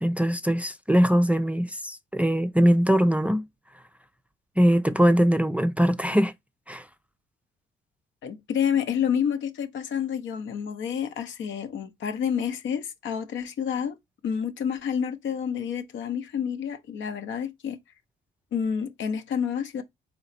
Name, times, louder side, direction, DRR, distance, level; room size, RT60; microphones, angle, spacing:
voice 1, 0.0-3.4 4.6-6.3 6.7-6.8, equal, 5° right, 0.4 m, -21 dB
voice 2, 8.2-14.0 14.2-17.8 18.5-19.8, left 8 dB, 75° left, 0.8 m, -29 dB
4.0 x 3.2 x 4.1 m
cardioid pair, 90°, 20 cm